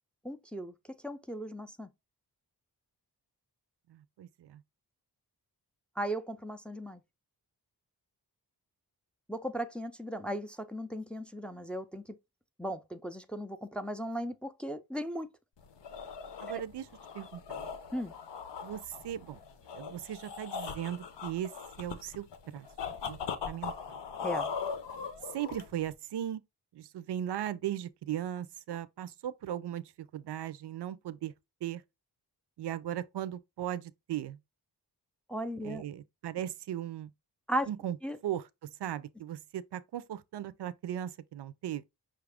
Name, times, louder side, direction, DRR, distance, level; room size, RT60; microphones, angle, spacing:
voice 1, 0.2-0.7 1.0-1.9 6.0-7.0 9.3-12.0 12.6-15.3 16.5-16.6 17.9-18.1 24.2-24.5 35.3-35.8 37.5-37.7 38.0-38.2, right 1 dB, 5° left, 0.3 m, -36 dB
voice 2, 3.9-4.6 16.4-16.9 17.1-17.6 18.6-19.4 19.7-22.3 22.5-22.7 23.1-23.2 23.5-23.7 25.3-26.4 26.7-31.3 31.6-31.8 32.6-34.4 35.6-37.1 37.7-38.0 38.2-41.8, right 11 dB, 75° right, 0.5 m, -37 dB
sound 1, 15.6-25.9, left 6 dB, 90° left, 0.8 m, -40 dB
5.5 x 2.4 x 3.4 m
wide cardioid pair, 110°, 41 cm